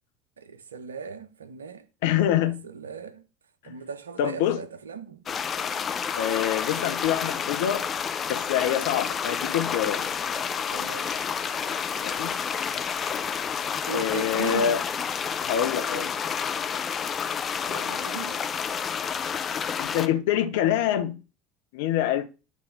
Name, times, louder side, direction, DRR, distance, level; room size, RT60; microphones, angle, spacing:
voice 1, 0.4-1.9 2.6-3.2 3.6-5.2 7.2-7.4 10.7-11.2 13.9-14.8 16.7-16.9 17.7-18.4, right 6 dB, 80° right, 0.7 m, -38 dB
voice 2, 2.0-2.6 3.6-3.7 4.2-4.6 6.2-7.9 8.3-10.1 12.0-12.3 13.9-14.8 15.4-16.1 19.8-21.2 21.7-22.3, left 10 dB, 65° left, 0.8 m, -25 dB
sound 1, 5.3-20.1, left 7 dB, 35° left, 0.7 m, -30 dB
9.5 x 3.3 x 6.4 m
figure-of-eight pair, 70°, 0 cm